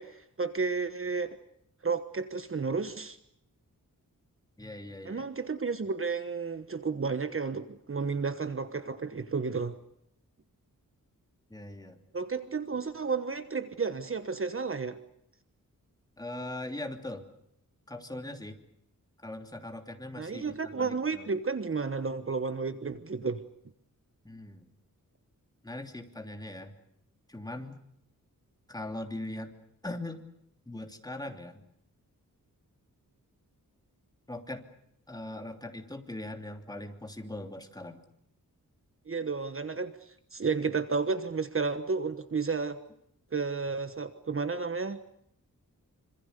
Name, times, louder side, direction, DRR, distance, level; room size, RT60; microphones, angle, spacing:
voice 1, 0.0-1.4 1.8-3.2 5.0-9.8 12.1-15.0 20.2-23.4 39.1-42.8 43.3-45.0, right 4 dB, 40° right, 11 dB, 1.3 m, -32 dB
voice 2, 4.6-5.3 11.5-12.0 16.2-17.3 17.9-18.6 19.2-21.3 24.2-24.7 25.6-26.7 27.3-27.8 28.7-29.5 29.8-30.3 30.7-31.6 34.3-34.7 35.1-38.0, left 1 dB, 10° left, 5 dB, 3.1 m, -40 dB
26.5 x 26.0 x 6.8 m, 0.75 s
wide cardioid pair, 125°, 34 cm